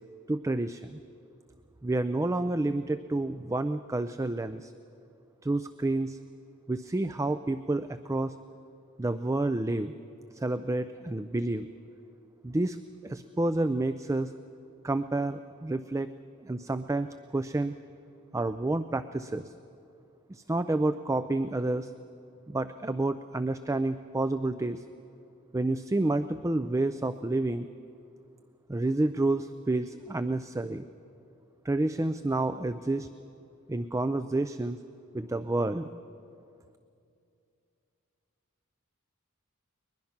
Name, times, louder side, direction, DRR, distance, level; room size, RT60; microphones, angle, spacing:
voice 1, 0.3-1.0 1.8-4.7 5.4-6.2 6.7-8.4 9.0-9.9 10.3-11.7 12.4-12.8 13.0-14.3 14.8-16.1 16.4-17.7 18.3-19.5 20.3-21.9 22.5-24.8 25.5-27.7 28.7-30.8 31.6-33.1 33.7-34.8 35.1-35.9, right 2 dB, 15° right, 11 dB, 0.4 m, -29 dB
21.5 x 21.0 x 5.9 m, 2.5 s
head